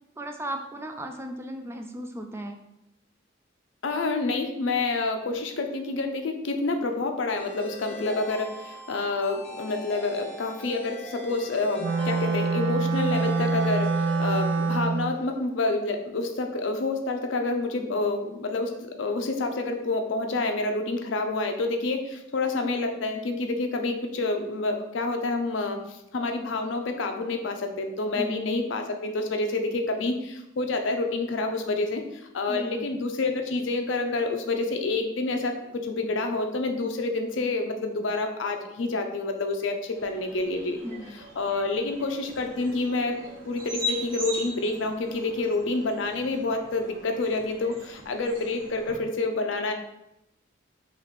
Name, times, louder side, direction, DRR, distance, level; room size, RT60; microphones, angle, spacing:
voice 1, 0.2-2.6 28.2-28.4 32.5-32.9 40.8-41.1, right 1 dB, 15° right, 5 dB, 0.3 m, -36 dB
voice 2, 3.8-40.8 41.4-49.7, left 3 dB, 75° left, 5 dB, 0.5 m, -28 dB
sound 1, 7.4-15.5, right 1 dB, 5° left, 0.7 m, -41 dB
Wind instrument woodwind instrument, 11.8-15.2, right 4 dB, 90° right, 0.4 m, -25 dB
sound 2, 39.9-49.0, left 1 dB, 50° right, 0.9 m, -39 dB
3.1 x 3.0 x 4.0 m, 0.85 s
head